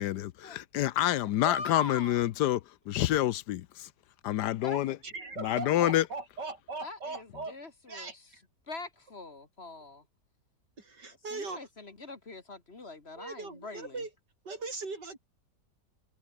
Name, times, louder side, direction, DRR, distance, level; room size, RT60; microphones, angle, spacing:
voice 1, 0.0-2.6 2.9-3.6 4.3-5.0 5.4-6.0, left 13 dB, 75° left, 1.2 m, -27 dB
voice 2, 1.4-2.2 4.5-4.8 6.8-8.1 8.7-10.0 11.3-14.0, left 3 dB, 35° left, 2.2 m, -42 dB
voice 3, 5.0-7.6 7.9-8.4 10.8-11.6 13.1-14.1 14.4-15.2, right 3 dB, 80° right, 4.8 m, -39 dB
omnidirectional pair, 1.8 m